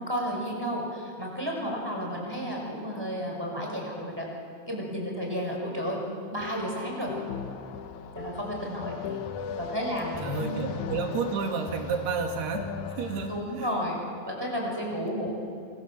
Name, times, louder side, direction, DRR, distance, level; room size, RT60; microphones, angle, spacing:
voice 1, 0.0-4.3 4.7-6.0 6.3-7.1 8.1-9.1 9.6-10.6 13.3-15.3, equal, 5° right, -1 dB, 5.7 m, -32 dB
sound 1, 6.4-13.4, left 6 dB, 65° left, 2.0 m, -38 dB
voice 2, 10.2-12.7 13.0-13.3 13.6-13.7, right 4 dB, 65° right, 3 dB, 4.2 m, -30 dB
27.0 x 26.5 x 7.6 m, 2.4 s
omnidirectional pair, 5.1 m